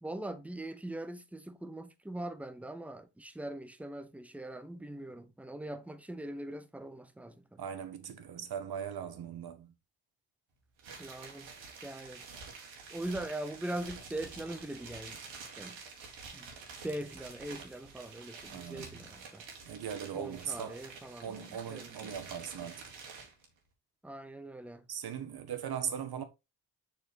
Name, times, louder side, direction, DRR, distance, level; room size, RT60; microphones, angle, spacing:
voice 1, 0.0-7.6 11.0-11.5 11.8-12.3 12.9-15.2 15.6-15.8 16.3-16.5 16.8-19.5 20.1-22.2 24.0-24.9, right 1 dB, 5° right, 0.8 m, -41 dB
voice 2, 7.6-9.7 18.5-19.0 19.6-20.8 21.2-22.9 24.9-26.2, right 8 dB, 50° right, 1.3 m, -39 dB
sound 1, 10.8-23.5, right 5 dB, 65° right, 1.8 m, -49 dB
7.1 x 3.2 x 4.2 m
hypercardioid pair, 40°, 50 cm